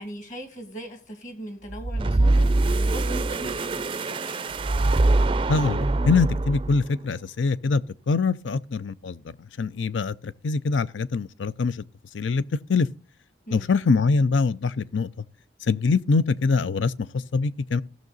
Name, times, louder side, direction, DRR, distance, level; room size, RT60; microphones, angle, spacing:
voice 1, 0.0-4.4 13.5-13.7, right 1 dB, 45° left, 2.2 m, -39 dB
sound 1, 1.7-6.9, right 2 dB, 25° right, 0.4 m, -23 dB
voice 2, 5.5-11.8 12.1-12.4 12.7-12.9 13.5-15.1 15.6-17.8, left 4 dB, 90° left, 0.5 m, -24 dB
16.0 x 6.5 x 3.9 m
head